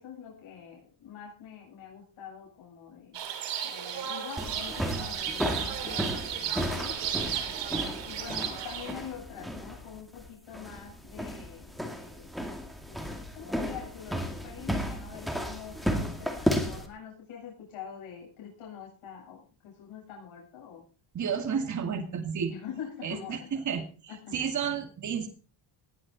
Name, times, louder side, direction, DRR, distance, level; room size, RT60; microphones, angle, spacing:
voice 1, 0.0-3.2 3.6-7.0 7.6-12.3 12.9-20.8 22.5-23.5 24.1-24.4, left 8 dB, 85° left, -3 dB, 8.0 m, -45 dB
sound 1, 3.1-8.9, right 8 dB, 60° right, 3.3 m, -34 dB
sound 2, 4.4-16.9, equal, ahead, 2.3 m, -34 dB
voice 2, 21.1-22.5 23.0-25.3, right 7 dB, 40° right, 5 dB, 2.3 m, -32 dB
19.5 x 11.0 x 4.2 m, 0.38 s
cardioid pair, 165°, 47 cm